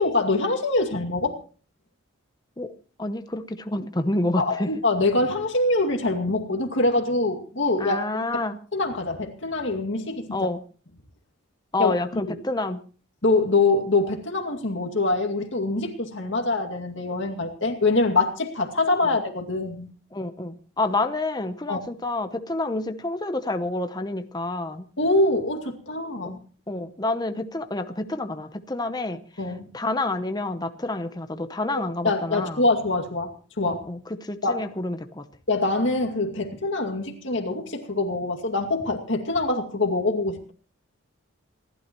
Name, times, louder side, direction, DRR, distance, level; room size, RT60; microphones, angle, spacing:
voice 1, 0.0-1.4 4.4-8.0 8.3-8.4 8.7-10.3 11.8-12.2 13.2-19.9 21.7-21.8 25.0-26.4 29.4-29.7 32.0-33.3 33.6-33.8 34.4-34.6 35.5-40.5, left 2 dB, 55° left, 2 dB, 2.3 m, -24 dB
voice 2, 3.0-4.7 7.8-8.6 10.3-10.6 11.7-12.8 20.1-24.9 26.2-26.4 26.7-29.2 29.7-32.6 33.7-35.3, left 2 dB, 20° left, 8 dB, 0.8 m, -28 dB
27.0 x 12.0 x 3.1 m, 0.39 s
head